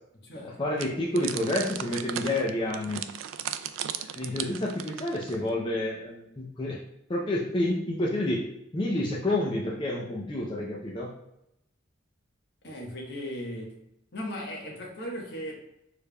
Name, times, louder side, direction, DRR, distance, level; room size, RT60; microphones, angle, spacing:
voice 1, 0.3-3.0 4.1-6.8 7.1-8.5 8.7-11.1, left 1 dB, 25° left, -3 dB, 0.5 m, -29 dB
sound 1, 0.8-5.5, right 10 dB, 85° right, 0.3 m, -36 dB
voice 2, 12.6-13.8 14.1-15.6, equal, 55° left, -1 dB, 1.1 m, -37 dB
6.7 x 3.3 x 2.2 m, 0.83 s
head